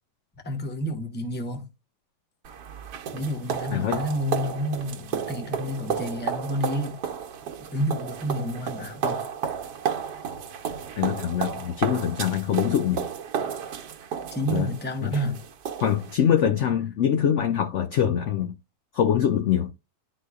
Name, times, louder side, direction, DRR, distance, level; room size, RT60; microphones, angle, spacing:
voice 1, 0.4-1.6 3.1-7.0 7.7-9.2 14.3-15.4, equal, 10° left, 0.6 m, -29 dB
sound 1, 2.4-16.1, right 7 dB, 85° right, 1.4 m, -32 dB
voice 2, 3.7-4.0 11.0-13.1 14.5-14.7 15.0-15.2 15.8-18.6 18.9-19.7, left 9 dB, 70° left, 0.7 m, -24 dB
11.0 x 4.0 x 2.3 m
omnidirectional pair, 1.8 m